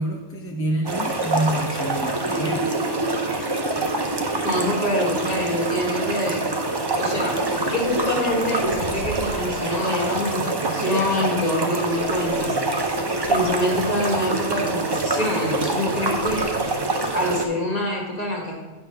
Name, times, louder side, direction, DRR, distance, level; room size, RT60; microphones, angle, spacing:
voice 1, 0.0-2.7, right 1 dB, 15° left, 1 dB, 0.5 m, -27 dB
sound 1, 0.9-17.5, right 2 dB, 30° right, 0.5 m, -25 dB
voice 2, 4.4-6.4 7.0-12.6 13.3-16.4 17.1-18.6, left 1 dB, 35° left, -2 dB, 1.7 m, -25 dB
sound 2, 8.3-9.6 10.8-10.9 11.9-13.7 15.8-17.3, right 4 dB, 80° right, 1.1 m, -40 dB
9.0 x 3.4 x 5.7 m, 1.1 s
omnidirectional pair, 1.2 m